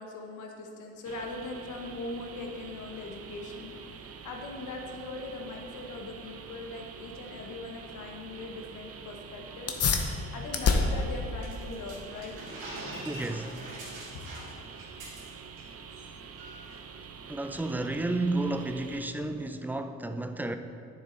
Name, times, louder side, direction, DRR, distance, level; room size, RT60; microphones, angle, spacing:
voice 1, 0.0-3.7 4.2-9.8 10.2-12.3, left 2 dB, 80° left, 1.3 m, -40 dB
sound 1, 1.0-19.1, right 6 dB, 50° right, 0.7 m, -46 dB
sound 2, 9.6-19.6, left 4 dB, 50° left, 1.0 m, -34 dB
sound 3, 11.4-15.6 15.9-16.1 16.4-16.8, right 1 dB, 85° right, 2.4 m, -43 dB
voice 2, 13.0-13.6 17.3-20.6, right 2 dB, 5° right, 0.5 m, -32 dB
9.4 x 7.1 x 4.0 m
cardioid pair, 90°, 30 cm